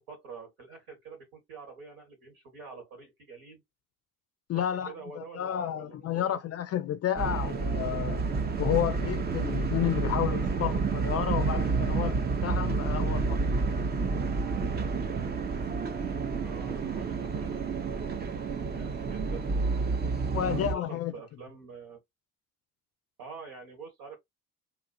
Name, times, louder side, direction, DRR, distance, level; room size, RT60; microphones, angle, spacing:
voice 1, 0.0-3.6 4.5-6.4 16.4-19.4 20.4-22.0 23.2-24.2, right 5 dB, 65° right, 1.7 m, -47 dB
voice 2, 4.5-8.3 8.6-13.4 20.3-21.1, left 11 dB, 35° left, 0.4 m, -31 dB
sound 1, 7.2-20.7, right 4 dB, 25° right, 0.5 m, -29 dB
3.0 x 2.4 x 2.5 m
hypercardioid pair, 55°, 44 cm